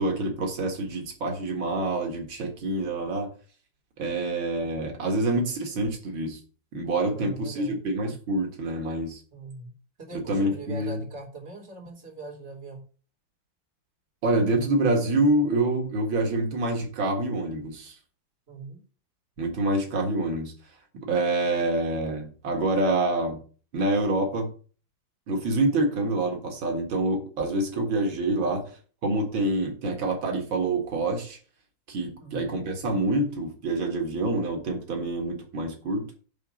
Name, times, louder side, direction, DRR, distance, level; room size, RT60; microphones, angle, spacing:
voice 1, 0.0-3.3 4.0-6.4 6.7-9.2 10.3-11.0 14.2-18.0 19.4-20.5 21.1-23.4 23.7-24.5 25.3-28.6 29.0-31.4 31.9-36.1, right 2 dB, 90° right, 3 dB, 2.5 m, -26 dB
voice 2, 7.1-7.8 9.3-9.7 10.0-12.8 18.5-18.8 28.3-28.5 32.2-32.6, right 2 dB, 35° right, -1 dB, 3.1 m, -41 dB
10.5 x 3.9 x 7.6 m, 0.39 s
omnidirectional pair, 2.1 m